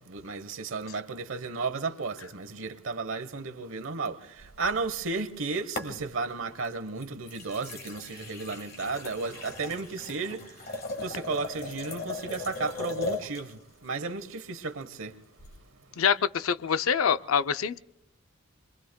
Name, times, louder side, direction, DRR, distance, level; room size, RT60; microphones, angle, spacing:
voice 1, 0.0-4.2 4.6-10.4 11.0-13.5 13.8-15.1, right 4 dB, 80° right, 1.0 m, -33 dB
sound 1, 4.4-5.4 5.8-6.4 7.0-13.5 15.4-15.6, left 3 dB, 45° left, 1.5 m, -38 dB
voice 2, 16.0-17.8, left 7 dB, 90° left, 0.5 m, -25 dB
28.5 x 22.5 x 2.2 m
head